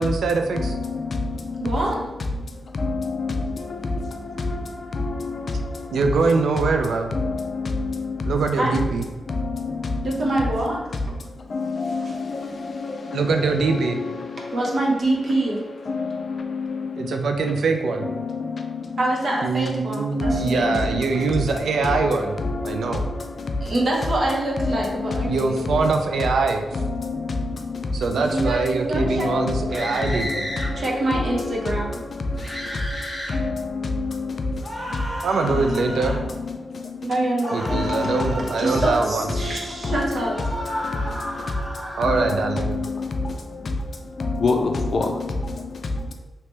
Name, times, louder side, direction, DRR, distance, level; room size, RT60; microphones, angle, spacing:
voice 1, 0.0-0.8 5.9-7.1 8.3-9.1 13.1-14.0 17.0-18.1 19.4-22.4 22.6-23.1 25.3-26.8 27.9-30.5 35.2-36.2 37.5-39.3 42.0-42.7, right 4 dB, 90° right, 4 dB, 0.3 m, -23 dB
voice 2, 0.5-1.7 2.3-6.0 7.1-8.4 9.3-10.3 11.1-14.8 15.9-17.2 18.0-19.0 19.8-19.9 20.2-23.7 24.6-25.9 26.7-28.2 28.9-35.3 35.5-37.1 37.7-38.7 39.4-46.1, left 3 dB, 50° left, 4 dB, 0.4 m, -28 dB
voice 3, 1.6-2.0 8.6-8.9 10.0-10.9 12.0-12.1 14.4-15.6 19.0-20.8 23.6-25.7 28.2-29.3 30.8-32.0 37.0-38.1 38.4-40.4, right 1 dB, 55° right, -2 dB, 0.8 m, -25 dB
sound 1, 29.7-30.7 32.4-33.4 34.6-36.2 37.4-39.1 40.2-42.3, equal, 5° left, 0.9 m, -32 dB
3.0 x 2.8 x 3.3 m, 1.2 s
wide cardioid pair, 135°, 0 cm